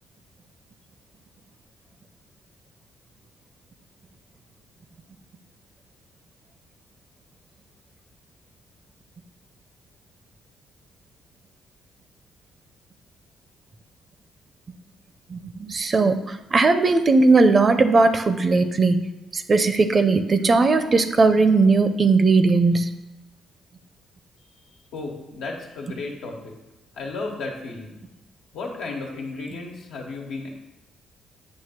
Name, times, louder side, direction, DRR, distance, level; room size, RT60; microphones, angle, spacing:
voice 1, 15.3-19.0 19.3-22.9, right 3 dB, 40° right, 9 dB, 0.6 m, -18 dB
voice 2, 24.9-26.5 26.9-28.0 28.5-30.5, left 3 dB, 85° left, -1 dB, 1.4 m, -33 dB
8.4 x 2.8 x 5.8 m, 1.0 s
cardioid pair, 80°, 0 cm